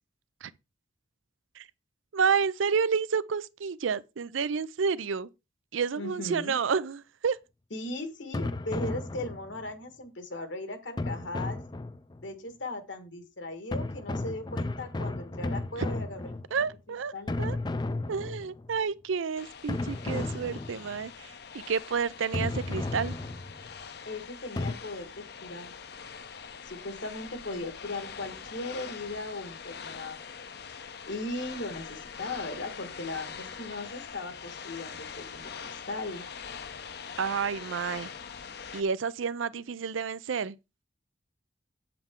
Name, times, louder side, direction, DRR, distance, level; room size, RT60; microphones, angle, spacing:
voice 1, 2.1-5.3 5.7-7.4 15.8-15.9 16.5-17.1 17.4-17.6 18.1-23.2 27.5-27.6 37.2-38.1 38.7-40.6, right 6 dB, 90° right, 0.5 m, -30 dB
voice 2, 6.0-6.6 7.7-11.6 12.2-16.6 17.1-17.4 24.1-25.7 26.6-30.2 31.1-36.2, left 2 dB, 70° left, 1.7 m, -38 dB
sound 1, 8.3-9.7 11.0-12.3 13.7-16.8 17.3-18.8 19.7-21.1 22.3-23.7 24.6-24.7, left 2 dB, 20° left, 0.4 m, -34 dB
sound 2, 19.4-38.8, left 6 dB, 55° left, 0.7 m, -43 dB
8.0 x 7.7 x 3.7 m
head